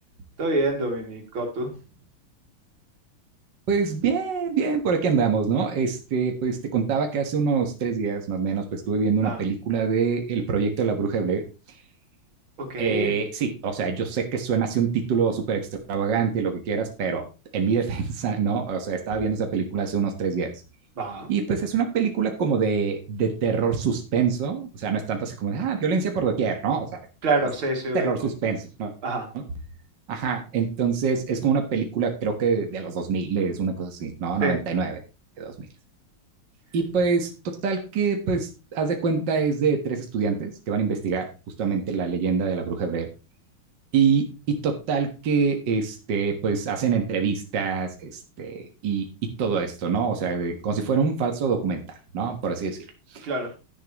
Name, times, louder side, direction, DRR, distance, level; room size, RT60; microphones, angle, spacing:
voice 1, 0.4-1.7 9.2-9.4 12.7-13.1 21.0-21.3 27.2-28.1 29.0-29.3 34.4-34.6 53.2-53.5, right 2 dB, 90° right, 2 dB, 3.4 m, -26 dB
voice 2, 3.7-11.4 12.8-17.2 17.5-20.5 21.3-27.0 27.4-27.5 27.9-28.9 29.3-29.5 30.1-35.0 35.4-35.5 36.7-41.3 41.6-43.1 43.9-51.8 52.1-52.8 53.1-53.3, right 5 dB, 60° right, 4 dB, 2.1 m, -25 dB
11.0 x 10.0 x 3.0 m, 0.30 s
omnidirectional pair, 2.2 m